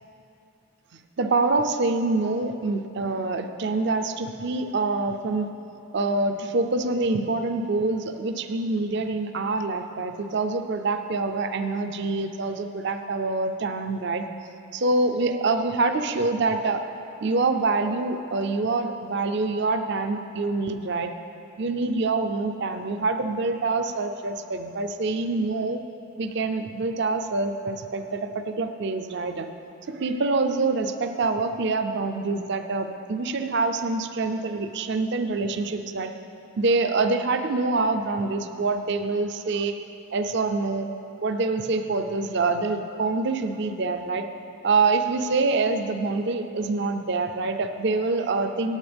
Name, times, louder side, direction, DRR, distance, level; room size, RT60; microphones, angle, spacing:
voice 1, 1.2-5.5 5.9-14.3 14.7-16.8 17.2-21.1 21.6-25.8 26.2-29.5 29.9-36.1 36.6-39.8 40.1-40.9 41.2-44.2 44.6-48.8, right 3 dB, 50° right, 7 dB, 0.5 m, -25 dB
16.5 x 8.6 x 3.4 m, 2.7 s
head